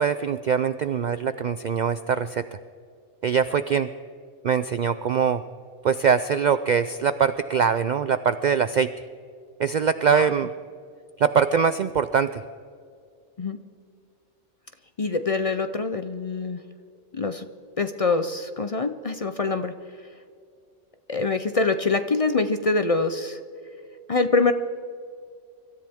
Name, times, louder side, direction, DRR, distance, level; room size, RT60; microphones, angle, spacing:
voice 1, 0.0-2.4 3.2-3.9 4.4-5.4 5.8-8.9 9.6-10.5 11.2-12.4, right 6 dB, 65° right, 12 dB, 0.4 m, -22 dB
voice 2, 15.0-16.6 17.1-17.5 17.8-19.7 21.1-23.4 24.1-24.5, left 3 dB, 40° left, 9 dB, 0.6 m, -24 dB
24.5 x 13.5 x 3.6 m, 2.3 s
omnidirectional pair, 1.2 m